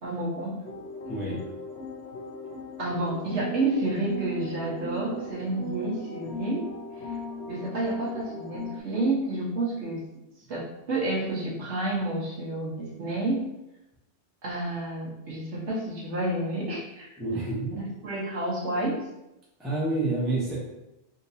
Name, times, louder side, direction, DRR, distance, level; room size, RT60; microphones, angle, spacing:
voice 1, 0.0-0.6 2.8-6.7 7.0-7.2 7.5-10.1 10.5-13.5 14.4-17.1 17.7-19.0, right 2 dB, 80° right, -5 dB, 1.4 m, -30 dB
sound 1, 0.6-8.8, equal, 80° left, 0.9 m, -38 dB
voice 2, 1.1-1.4 17.2-17.7 19.6-20.6, right 2 dB, ahead, -7 dB, 0.7 m, -28 dB
3.7 x 2.8 x 2.7 m, 0.91 s
omnidirectional pair, 1.2 m